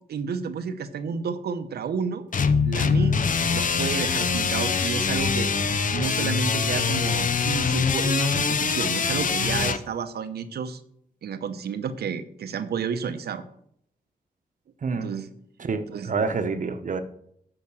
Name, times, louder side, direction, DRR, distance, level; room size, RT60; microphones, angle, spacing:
voice 1, 0.1-2.2 2.6-3.3 3.5-5.5 5.9-10.8 11.2-13.4 14.9-15.3 15.9-16.1, right 6 dB, 80° right, 0.8 m, -31 dB
sound 1, 2.3-9.8, left 5 dB, 55° left, 0.7 m, -24 dB
voice 2, 15.6-17.0, right 4 dB, 55° right, 0.9 m, -27 dB
8.8 x 5.7 x 6.2 m
cardioid pair, 65°, 16 cm